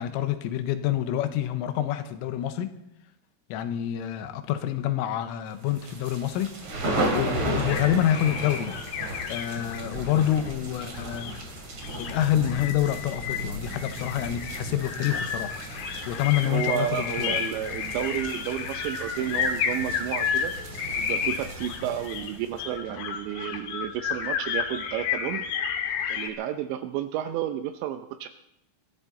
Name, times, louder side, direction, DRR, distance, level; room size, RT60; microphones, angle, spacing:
voice 1, 0.0-2.7 3.5-6.8 7.1-8.8 9.3-11.3 12.0-15.6 16.1-17.4, left 11 dB, 85° left, 9 dB, 3.6 m, -27 dB
sound 1, 5.7-22.6, right 2 dB, 40° right, 2.5 m, -35 dB
sound 2, 7.7-26.3, left 7 dB, 65° left, 2.7 m, -32 dB
voice 2, 16.4-20.5 21.0-25.4 26.1-28.3, right 11 dB, 80° right, 9 dB, 2.6 m, -31 dB
22.0 x 14.5 x 4.1 m, 0.84 s
omnidirectional pair, 5.7 m